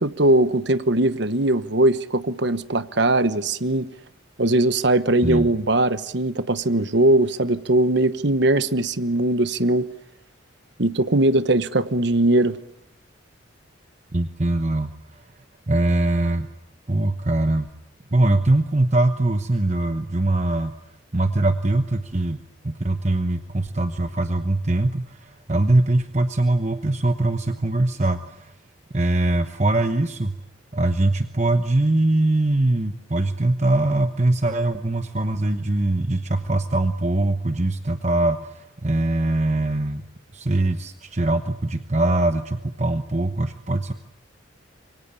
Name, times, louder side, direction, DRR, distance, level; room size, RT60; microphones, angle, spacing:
voice 1, 0.0-3.9 4.4-9.9 10.8-12.6, right 1 dB, 55° right, 1.1 m, -20 dB
voice 2, 14.1-15.3 15.7-16.5 16.9-17.7 18.1-20.7 21.1-22.4 22.6-28.5 28.9-30.4 30.7-40.0 40.3-43.9, right 2 dB, 35° right, 1.0 m, -22 dB
26.5 x 24.0 x 8.3 m
head